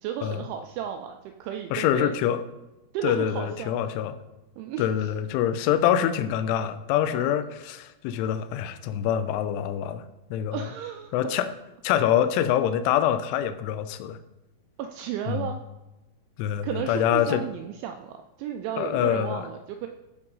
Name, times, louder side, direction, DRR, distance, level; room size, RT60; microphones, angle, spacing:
voice 1, 0.0-2.1 2.9-3.8 4.6-5.1 7.1-7.3 10.5-11.4 14.8-15.6 16.6-19.9, right 9 dB, 85° right, 5 dB, 2.7 m, -34 dB
voice 2, 1.7-2.4 3.0-4.2 4.8-10.1 10.3-10.7 11.1-11.5 11.8-14.2 15.3-15.5 16.4-17.4 18.8-19.5, left 10 dB, 80° left, 11 dB, 2.9 m, -25 dB
13.5 x 4.5 x 5.4 m, 1.0 s
omnidirectional pair, 6.0 m